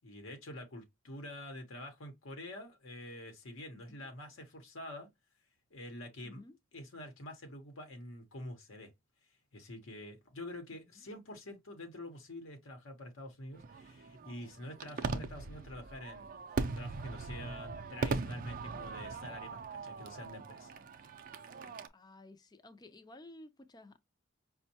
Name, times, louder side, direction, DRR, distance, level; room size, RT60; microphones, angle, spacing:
voice 1, 0.0-5.1 5.7-6.4 6.7-8.9 9.5-16.4 16.7-20.7, left 1 dB, 80° left, 0.9 m, -47 dB
voice 2, 3.7-4.1 6.2-6.6 21.9-24.0, left 2 dB, 20° left, 0.4 m, -54 dB
Fireworks, 13.5-21.9, right 4 dB, 45° right, 0.4 m, -40 dB
5.2 x 2.1 x 2.7 m
head